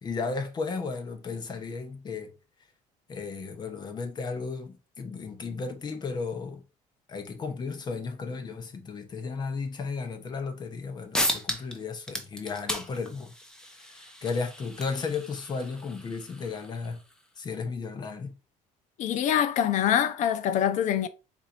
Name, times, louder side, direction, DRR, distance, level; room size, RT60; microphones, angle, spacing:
voice 1, 0.0-2.3 3.1-6.6 7.1-13.3 13.9-17.0 17.4-18.3, left 4 dB, 30° left, 0.9 m, -34 dB
sound 1, 10.8-10.9 11.1-11.8 12.0-17.2, equal, 5° left, 0.7 m, -35 dB
voice 2, 19.0-21.1, left 10 dB, 60° left, 0.6 m, -24 dB
4.1 x 2.6 x 4.3 m
cardioid pair, 140°, 14 cm